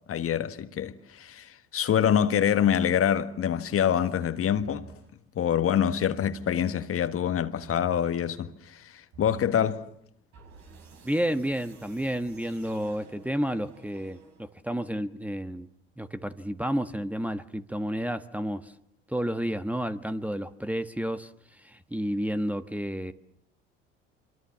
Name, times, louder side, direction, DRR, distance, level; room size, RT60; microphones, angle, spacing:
voice 1, 0.1-4.9 5.3-9.8, left 9 dB, 50° left, 1.6 m, -26 dB
sound 1, 4.6-5.1 6.1-6.7 7.6-8.2 9.1-9.7 10.3-14.7, right 4 dB, 65° right, 6.3 m, -50 dB
voice 2, 11.0-15.7 16.0-18.7 19.1-23.1, equal, 5° right, 1.3 m, -31 dB
26.5 x 24.0 x 7.4 m
hypercardioid pair, 65°, 30 cm